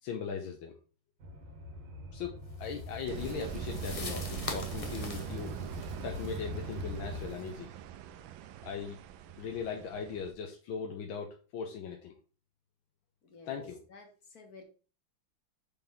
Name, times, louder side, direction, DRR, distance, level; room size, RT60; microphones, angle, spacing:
voice 1, 0.0-0.8 2.1-5.5 6.0-7.7 8.6-9.0 9.4-12.1 13.5-13.8, left 6 dB, 85° left, 2 dB, 1.7 m, -39 dB
sound 1, 1.2-7.3, left 1 dB, 65° right, 1.9 m, -43 dB
sound 2, 2.6-7.5, left 3 dB, 35° left, 0.5 m, -44 dB
sound 3, 3.1-10.3, right 9 dB, 80° right, 1.4 m, -42 dB
voice 2, 13.2-13.6 13.9-14.6, left 3 dB, 50° left, 3 dB, 1.7 m, -53 dB
6.1 x 5.4 x 3.6 m, 0.36 s
omnidirectional pair, 2.1 m